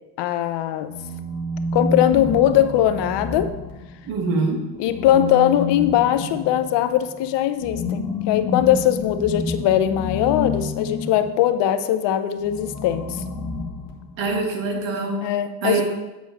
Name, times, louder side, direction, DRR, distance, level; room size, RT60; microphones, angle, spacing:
voice 1, 0.2-0.9 1.7-3.5 4.8-13.1 15.2-15.8, left 11 dB, 65° left, 11 dB, 0.7 m, -20 dB
sound 1, 0.8-4.1 4.8-11.4 12.4-14.3, left 3 dB, 45° left, 1.5 m, -29 dB
voice 2, 4.1-4.6 14.2-15.2 15.6-15.8, right 3 dB, 75° right, 2 dB, 1.6 m, -23 dB
8.3 x 4.6 x 4.2 m, 1.1 s
hypercardioid pair, 60°, 46 cm